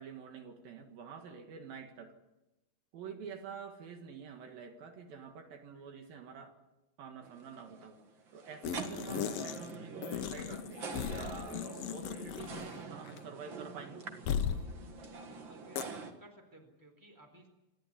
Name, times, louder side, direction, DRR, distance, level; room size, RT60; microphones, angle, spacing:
voice 1, 0.0-2.1 2.9-6.6 7.0-8.0 8.3-14.3, right 6 dB, 70° right, 5 dB, 3.5 m, -48 dB
sound 1, 7.2-16.1, right 4 dB, 45° right, 1.8 m, -46 dB
sound 2, 8.6-9.7 10.0-12.8 13.1-13.2 14.3-14.6 15.8-15.9, left 8 dB, 85° left, 1.4 m, -37 dB
voice 2, 15.3-17.5, right 1 dB, 5° right, 5 dB, 3.7 m, -57 dB
28.0 x 13.5 x 9.7 m, 1.0 s
omnidirectional pair, 4.4 m